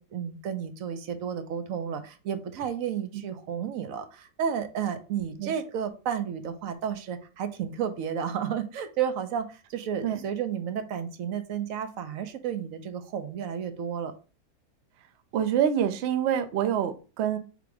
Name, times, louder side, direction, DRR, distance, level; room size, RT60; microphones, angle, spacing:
voice 1, 0.0-14.1, right 8 dB, 65° right, 9 dB, 0.9 m, -32 dB
voice 2, 15.3-17.4, right 9 dB, 85° right, 9 dB, 0.5 m, -26 dB
3.5 x 2.9 x 4.7 m, 0.34 s
omnidirectional pair, 1.7 m